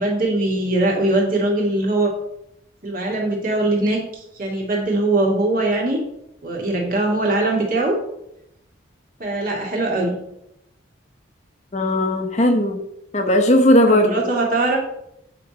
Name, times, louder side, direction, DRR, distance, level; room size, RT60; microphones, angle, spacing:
voice 1, 0.0-2.1 2.8-6.0 6.4-8.0 9.2-10.1 13.9-14.8, right 2 dB, 45° right, -1 dB, 2.3 m, -21 dB
voice 2, 11.7-12.8 13.1-14.2, left 1 dB, 35° left, 4 dB, 0.9 m, -17 dB
8.8 x 4.2 x 5.3 m, 0.81 s
head